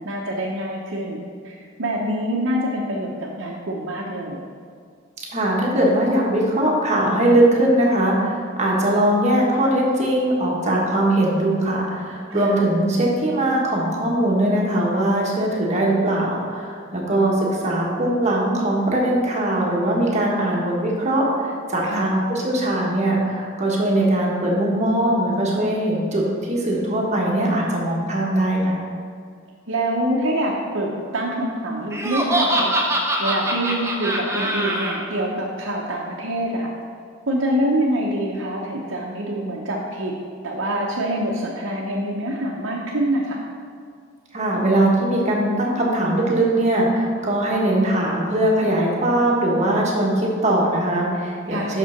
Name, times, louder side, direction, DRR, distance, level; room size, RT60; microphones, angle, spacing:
voice 1, 0.0-4.4 12.3-12.6 21.8-22.2 29.7-32.7 33.2-36.7 37.3-40.1 40.4-43.4 51.5-51.8, right 1 dB, 65° right, -4 dB, 0.9 m, -25 dB
voice 2, 5.3-28.8 44.3-51.8, right 1 dB, 35° right, -3 dB, 1.4 m, -20 dB
Laughter, 31.9-35.0, right 1 dB, 15° right, 0.9 m, -23 dB
6.0 x 5.7 x 5.9 m, 2.1 s
head